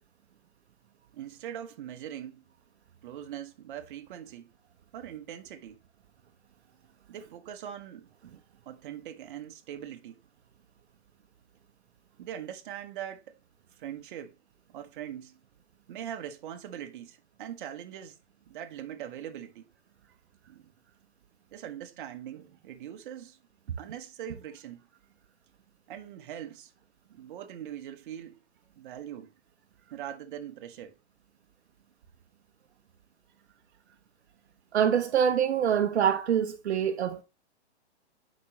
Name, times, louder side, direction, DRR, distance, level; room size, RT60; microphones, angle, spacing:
voice 1, 1.1-2.4 3.0-4.5 4.9-5.8 7.1-8.1 8.6-10.2 12.2-13.4 13.8-14.4 14.7-15.4 15.9-18.2 18.4-19.7 20.5-20.7 21.5-23.4 23.8-24.9 25.9-26.7 27.1-28.4 28.8-29.3 29.9-31.0, right 10 dB, 50° right, 1.2 m, -41 dB
voice 2, 34.7-37.2, right 8 dB, 70° right, 1.0 m, -25 dB
8.5 x 5.4 x 3.1 m
hypercardioid pair, 140°, 34 cm